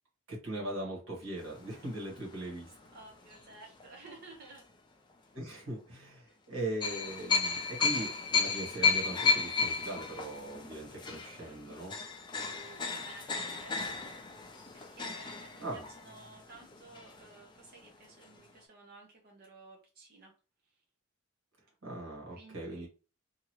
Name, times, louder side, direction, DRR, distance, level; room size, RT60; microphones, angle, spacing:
voice 1, 0.3-2.7 5.3-12.0 15.6-15.8 21.8-22.9, right 1 dB, 85° right, -2 dB, 1.4 m, -40 dB
sound 1, 1.4-3.9 4.4-4.6 6.8-17.6 17.8-17.9 18.2-18.4, left 5 dB, 20° left, 0.4 m, -34 dB
voice 2, 2.9-4.7 5.2-5.3 12.4-14.1 14.7-20.3 20.6-20.8 22.3-22.9, right 3 dB, 50° right, -2 dB, 0.7 m, -54 dB
2.8 x 2.4 x 3.0 m, 0.34 s
head